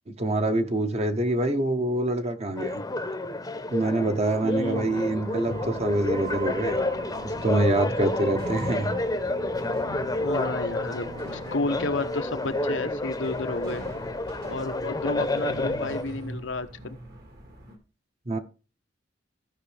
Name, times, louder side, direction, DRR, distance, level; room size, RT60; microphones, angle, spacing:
voice 1, 0.1-2.8 3.7-6.8 7.2-8.9 18.3-18.4, right 2 dB, 35° right, 0.9 m, -25 dB
sound 1, 2.6-16.0, left 2 dB, 20° left, 0.8 m, -30 dB
voice 2, 4.4-5.2 10.2-13.8 14.5-17.0, left 3 dB, 85° left, 0.8 m, -32 dB
sound 2, 4.7-13.0, right 2 dB, 80° right, 2.1 m, -41 dB
sound 3, 5.5-17.8, equal, 55° right, 2.0 m, -42 dB
14.5 x 5.3 x 3.3 m
head